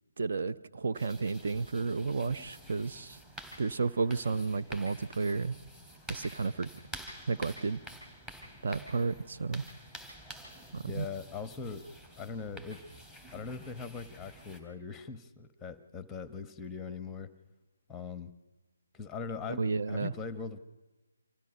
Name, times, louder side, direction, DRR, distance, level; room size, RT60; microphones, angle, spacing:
voice 1, 0.2-3.2 3.6-5.6 6.1-6.7 7.3-7.8 8.6-9.6 10.7-11.1 19.6-20.1, right 4 dB, 55° right, 10 dB, 0.6 m, -32 dB
sound 1, 0.9-14.6, equal, 15° right, 3.3 m, -49 dB
voice 2, 10.8-11.9 12.2-12.8 13.3-17.3 17.9-18.3 18.9-20.6, left 5 dB, 5° left, 12 dB, 1.0 m, -41 dB
26.0 x 15.0 x 6.8 m, 1.2 s
figure-of-eight pair, 145°, 0 cm